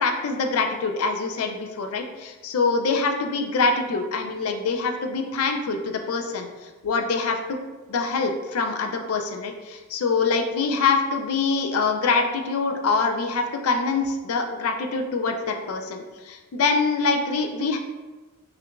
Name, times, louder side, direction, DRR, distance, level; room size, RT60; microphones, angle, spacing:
voice 1, 0.0-7.4 7.9-17.8, left 4 dB, 85° left, 4 dB, 0.4 m, -25 dB
5.8 x 2.5 x 2.2 m, 1.2 s
head